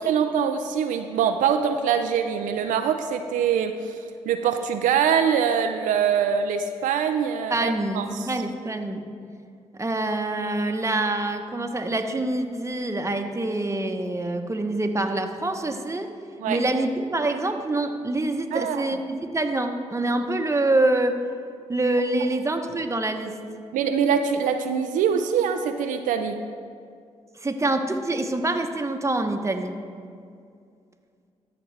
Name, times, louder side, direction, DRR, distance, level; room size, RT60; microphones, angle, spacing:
voice 1, 0.0-4.0 4.3-8.4 16.4-16.6 18.5-18.9 23.7-26.4, right 7 dB, 90° right, 7 dB, 0.4 m, -24 dB
voice 2, 7.5-9.0 9.7-16.1 16.5-21.2 21.7-23.4 27.4-29.7, right 2 dB, 20° right, 5 dB, 0.9 m, -26 dB
14.0 x 5.9 x 3.3 m, 2.3 s
supercardioid pair, 45°, 13 cm